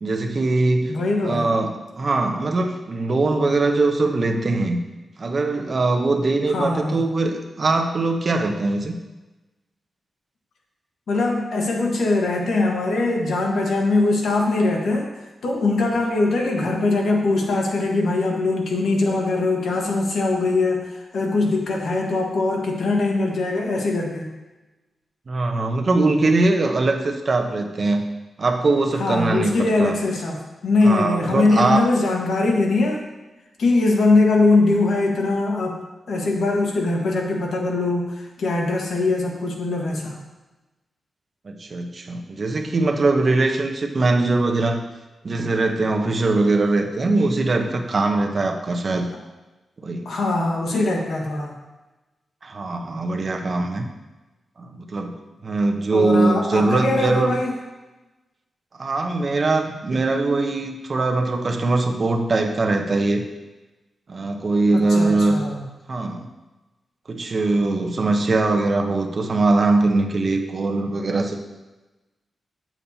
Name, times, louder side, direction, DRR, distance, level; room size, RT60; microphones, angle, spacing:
voice 1, 0.0-0.9 1.2-4.8 5.2-9.0 25.3-28.0 28.4-30.0 30.8-31.9 41.4-44.8 45.2-49.1 49.8-50.1 52.4-53.9 54.6-55.1 55.4-57.4 58.7-63.2 64.1-65.4 65.9-66.3 67.1-71.4, right 2 dB, 45° right, 3 dB, 0.8 m, -21 dB
voice 2, 0.9-1.5 6.5-7.0 11.1-15.1 15.4-24.3 29.0-33.0 33.6-35.8 36.1-40.2 50.0-51.6 55.9-57.5 64.7-65.6, left 2 dB, 80° left, 0 dB, 1.3 m, -21 dB
8.4 x 7.2 x 2.8 m, 1.1 s
cardioid pair, 95°, 0 cm